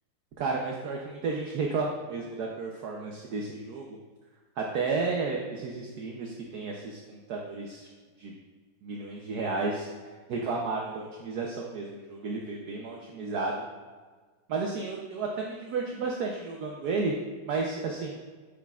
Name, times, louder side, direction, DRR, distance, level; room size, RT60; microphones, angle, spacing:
voice 1, 0.4-4.0 4.6-7.9 8.2-8.3 8.8-9.9 10.3-13.7 14.5-17.1 17.5-18.2, right 4 dB, 65° right, 0 dB, 1.2 m, -32 dB
11.5 x 6.1 x 2.4 m, 1.5 s
omnidirectional pair, 2.0 m